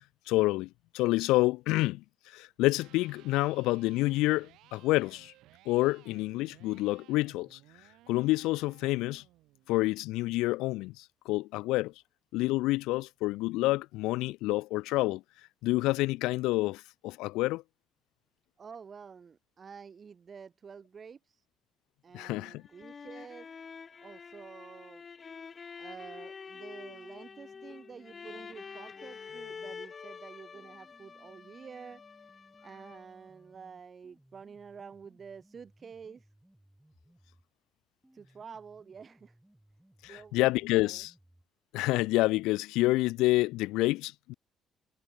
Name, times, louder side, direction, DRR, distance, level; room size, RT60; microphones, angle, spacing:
voice 1, 0.3-5.3 5.7-7.6 8.1-9.2 9.7-11.9 12.3-15.2 15.6-17.6 22.1-22.6 40.0-41.1 41.7-44.3, left 20 dB, 90° left, 0.4 m, -28 dB
Electric guitar, 2.6-10.7, right 16 dB, 85° right, 2.6 m, -60 dB
voice 2, 18.6-21.5 22.0-23.5 24.0-25.1 25.4-32.0 32.6-36.3 38.1-39.4 40.1-40.5 40.7-41.1, right 6 dB, 40° right, 5.8 m, -49 dB
sound 1, 22.6-33.3, left 5 dB, 40° left, 1.8 m, -47 dB
sound 2, 26.5-29.8 30.5-37.5 38.0-41.5, right 1 dB, 5° right, 3.9 m, -63 dB
cardioid pair, 80°, 0 cm